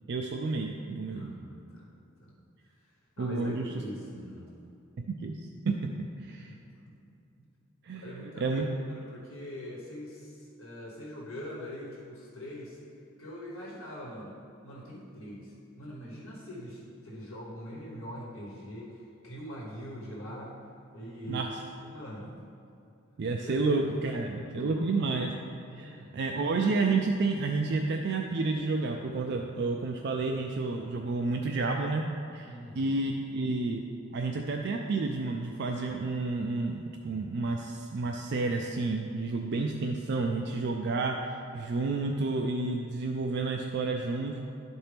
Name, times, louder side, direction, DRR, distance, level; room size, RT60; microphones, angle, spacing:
voice 1, 0.1-1.3 3.2-3.6 5.1-5.4 5.6-6.5 7.8-8.6 21.3-21.5 23.2-25.3 25.7-32.1 32.3-33.8 34.1-44.4, right 3 dB, 55° right, 2 dB, 0.4 m, -30 dB
voice 2, 1.1-1.9 2.2-2.3 3.2-4.4 6.5-6.6 6.9-7.0 8.0-8.7 8.9-12.8 13.2-14.4 14.6-19.0 19.2-20.6 20.9-21.4 21.8-22.4 23.4-25.3 25.7-26.3 32.4-33.0, equal, 75° left, -4 dB, 1.3 m, -43 dB
11.5 x 4.4 x 3.4 m, 2.6 s
head